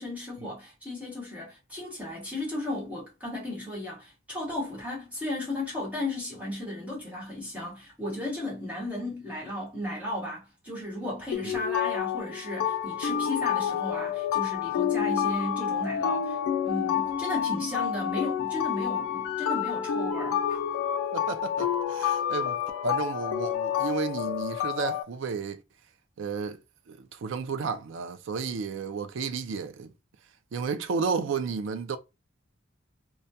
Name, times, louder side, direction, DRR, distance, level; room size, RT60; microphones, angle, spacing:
voice 1, 0.0-16.4 16.6-20.6, left 1 dB, 5° right, 0.9 m, -35 dB
sound 1, 11.3-25.0, left 9 dB, 80° left, 0.3 m, -29 dB
voice 2, 21.1-22.6 22.8-25.6 26.2-26.6 26.9-29.9 30.5-32.0, right 5 dB, 60° right, 0.3 m, -32 dB
2.3 x 2.1 x 2.6 m
head